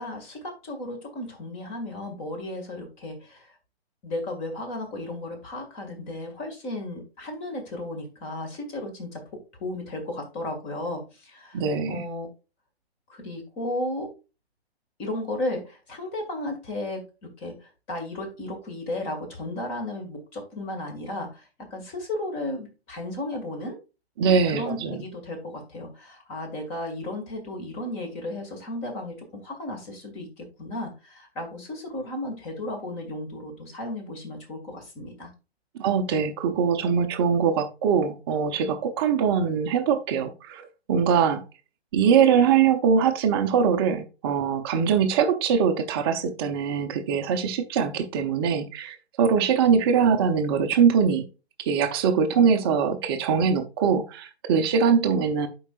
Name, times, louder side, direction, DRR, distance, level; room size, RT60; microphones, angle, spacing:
voice 1, 0.0-3.6 4.0-9.2 9.6-12.3 13.1-14.1 15.0-23.8 24.5-35.3, left 1 dB, 20° left, 2.0 m, -34 dB
voice 2, 11.5-12.0 24.2-25.0 35.8-41.4 41.9-51.3 51.7-55.5, right 6 dB, 25° right, 0.7 m, -22 dB
11.5 x 4.7 x 2.4 m
figure-of-eight pair, 130°, 32 cm